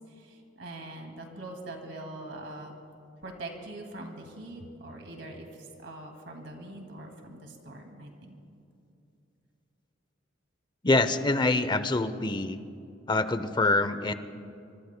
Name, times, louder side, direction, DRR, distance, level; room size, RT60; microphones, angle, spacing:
voice 1, 0.1-2.7 3.2-8.4, right 2 dB, 65° right, 2 dB, 2.3 m, -43 dB
voice 2, 10.8-12.6 13.1-14.1, left 2 dB, 25° left, 12 dB, 0.7 m, -25 dB
25.5 x 25.0 x 2.2 m, 2.7 s
head